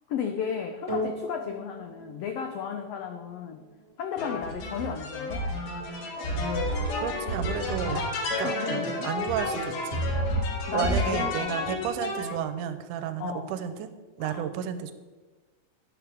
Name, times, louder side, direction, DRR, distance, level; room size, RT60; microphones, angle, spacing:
voice 1, 0.1-3.7 4.0-5.5 7.9-8.1 8.4-9.1 10.7-11.8 13.2-13.6 14.2-14.4, left 7 dB, 90° left, 5 dB, 1.4 m, -34 dB
sound 1, 0.9-9.4 10.2-10.3, equal, 10° right, 3.3 m, -42 dB
sound 2, 4.2-12.4, left 1 dB, 65° left, 2.6 m, -30 dB
voice 2, 7.0-8.0 8.4-10.0 10.7-13.9 14.2-14.9, right 9 dB, 85° right, 11 dB, 2.2 m, -32 dB
12.0 x 8.7 x 3.5 m, 1.3 s
omnidirectional pair, 3.6 m